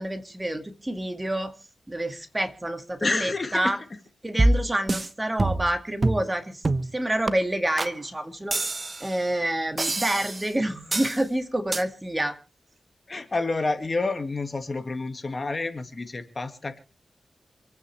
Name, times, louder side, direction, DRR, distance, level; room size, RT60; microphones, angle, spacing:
voice 1, 0.0-1.5 1.9-3.8 4.2-6.6 6.9-8.6 9.0-12.3, right 1 dB, 15° right, 7 dB, 2.0 m, -28 dB
voice 2, 3.0-3.8 13.1-16.8, left 3 dB, 35° left, 8 dB, 2.1 m, -29 dB
sound 1, 4.4-5.1 5.4-5.7 6.0-6.3 6.6-6.9 7.3-7.4 7.8-7.9 8.5-9.1 9.8-10.5 10.9-11.2 11.7-11.8, right 2 dB, 30° right, 1.0 m, -25 dB
27.5 x 9.4 x 3.3 m, 0.34 s
wide cardioid pair, 105°, 0 cm